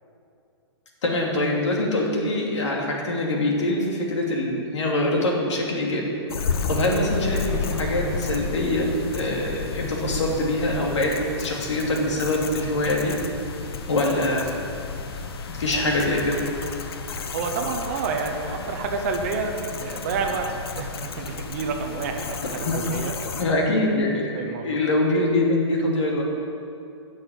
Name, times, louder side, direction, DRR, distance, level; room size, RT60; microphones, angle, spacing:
voice 1, 1.0-6.1 6.7-8.9 9.1-13.1 13.9-14.6 15.5-16.5 22.6-22.7 23.4-26.2, left 1 dB, 85° left, -1 dB, 2.7 m, -24 dB
sound 1, 6.3-23.4, left 4 dB, 55° left, 1.0 m, -32 dB
voice 2, 17.3-23.4 24.1-24.9, right 5 dB, 30° right, 4 dB, 0.9 m, -29 dB
10.0 x 6.5 x 8.7 m, 2.6 s
hypercardioid pair, 175°, 15 cm